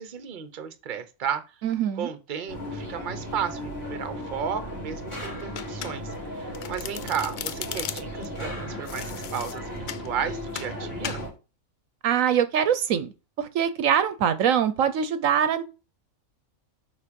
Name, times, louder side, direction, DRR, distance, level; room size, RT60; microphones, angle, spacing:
voice 1, 0.0-1.4 2.0-11.2, right 8 dB, 40° right, 0.9 m, -33 dB
voice 2, 1.6-2.1 12.0-13.1 13.4-15.6, right 8 dB, 75° right, 1.1 m, -23 dB
sound 1, 2.5-11.3, equal, 45° left, 3.0 m, -36 dB
sound 2, 5.1-6.0 8.3-9.3, left 1 dB, 20° left, 1.9 m, -42 dB
Domestic sounds home sounds, 5.5-6.2 6.5-8.3 8.9-10.1 10.5-10.7 11.0-11.3, left 9 dB, 80° left, 0.4 m, -36 dB
8.3 x 3.8 x 5.2 m
omnidirectional pair, 1.4 m